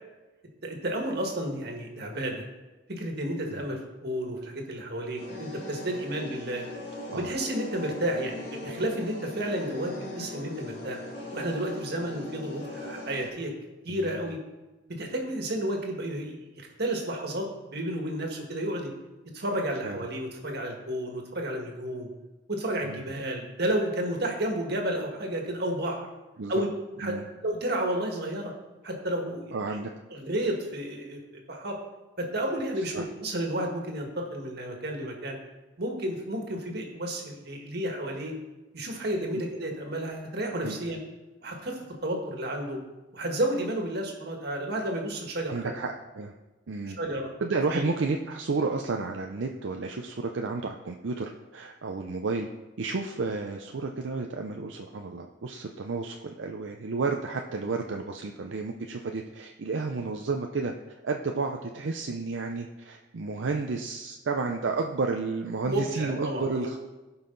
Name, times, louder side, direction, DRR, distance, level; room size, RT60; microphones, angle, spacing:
voice 1, 0.6-2.4 2.9-6.7 7.1-11.0 11.3-13.5 13.8-14.4 15.0-18.9 19.3-22.1 22.5-26.1 26.5-26.7 26.9-28.5 28.8-29.8 30.1-31.2 31.5-31.8 32.2-35.4 35.8-38.3 38.7-41.0 41.4-42.8 43.1-45.7 47.0-47.3 47.7-47.9 65.6-66.7, right 1 dB, 60° right, 1 dB, 1.8 m, -31 dB
sound 1, 5.2-13.3, left 2 dB, 60° left, 2.8 m, -40 dB
voice 2, 29.5-29.9 32.8-33.0 40.6-40.8 45.5-46.3 46.7-47.0 47.4-52.5 52.8-60.7 61.0-66.8, right 4 dB, 85° right, 3 dB, 0.6 m, -31 dB
15.0 x 5.6 x 3.9 m, 1.1 s
head